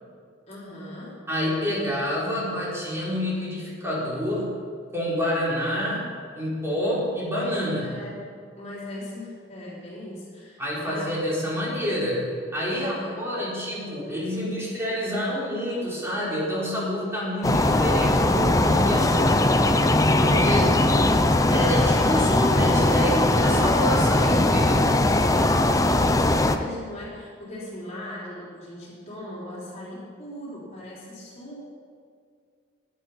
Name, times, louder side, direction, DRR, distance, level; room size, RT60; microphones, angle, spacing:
voice 1, 0.5-1.2 7.8-8.3 8.6-11.2 12.7-13.4 20.3-20.8 25.3-31.6, left 1 dB, 35° left, -6 dB, 3.9 m, -39 dB
voice 2, 1.3-4.5 4.9-6.1 6.3-8.0 10.6-19.3 20.2-20.7 21.5-25.0, equal, 15° right, -7 dB, 4.1 m, -28 dB
sound 1, 17.4-26.6, left 2 dB, 20° left, 0.6 m, -20 dB
16.0 x 10.5 x 5.7 m, 2.2 s
head